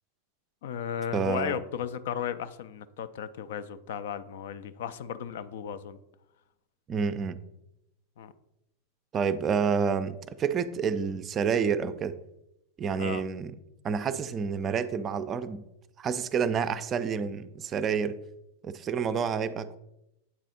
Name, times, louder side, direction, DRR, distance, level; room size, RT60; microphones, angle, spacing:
voice 1, 0.6-6.0 8.2-8.3 13.0-13.2, left 9 dB, 55° left, 13 dB, 0.3 m, -35 dB
voice 2, 1.1-1.6 6.9-7.4 9.1-12.1 12.8-13.5 13.8-15.6 16.0-18.2 18.6-19.8, right 6 dB, 25° right, 12 dB, 0.4 m, -29 dB
8.4 x 4.0 x 3.8 m, 0.86 s
figure-of-eight pair, 90°, 0 cm